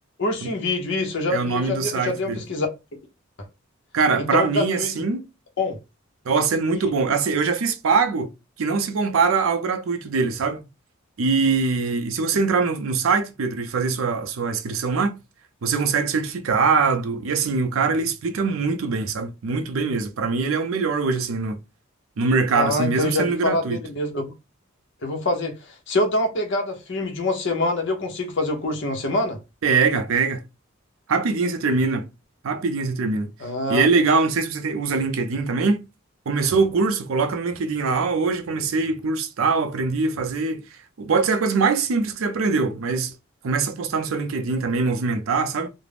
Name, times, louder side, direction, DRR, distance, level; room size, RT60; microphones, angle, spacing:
voice 1, 0.2-2.7 4.2-4.9 5.6-5.8 22.5-24.3 25.0-29.4 33.4-33.9, left 2 dB, 60° left, 0.7 m, -25 dB
voice 2, 1.3-2.4 3.9-5.2 6.3-8.3 8.6-10.7 11.2-15.2 15.6-21.6 22.2-23.8 29.6-30.4 31.1-32.1 32.4-33.3 33.7-35.8 36.3-43.1 43.4-45.7, right 4 dB, 75° right, 0.5 m, -23 dB
2.4 x 2.0 x 3.3 m
head